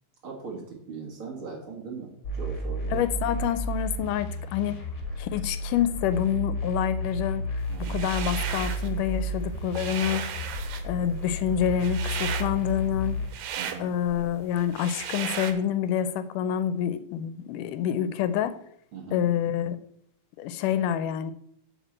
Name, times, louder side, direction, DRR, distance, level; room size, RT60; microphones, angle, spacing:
voice 1, 0.2-2.1 2.3-3.0 7.7-8.0 13.6-13.9 18.9-19.3, right 4 dB, 45° right, -1 dB, 2.2 m, -39 dB
sound 1, 2.2-13.3, equal, 35° left, 1.6 m, -32 dB
voice 2, 2.9-4.8 5.2-7.6 7.9-10.3 10.8-13.2 13.8-18.6 19.1-19.8 20.4-21.3, left 9 dB, 80° left, 13 dB, 2.1 m, -27 dB
sound 2, 7.8-8.9 9.3-15.5, right 8 dB, 85° right, 2.5 m, -35 dB
8.0 x 4.8 x 7.4 m, 0.69 s
omnidirectional pair, 3.7 m